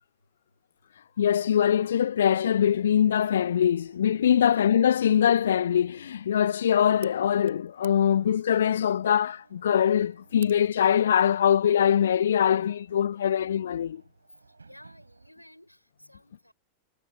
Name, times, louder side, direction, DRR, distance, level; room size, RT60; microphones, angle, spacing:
voice 1, 1.2-14.0, left 9 dB, 65° left, 0.4 m, -23 dB
sound 1, 2.1-15.3, right 4 dB, 80° right, 4.3 m, -59 dB
voice 2, 4.4-4.7 9.6-9.8 14.6-16.5, equal, 90° left, 5.5 m, -51 dB
sound 2, 7.0-12.1, right 11 dB, 60° right, 3.5 m, -56 dB
figure-of-eight pair, 90°, 0 cm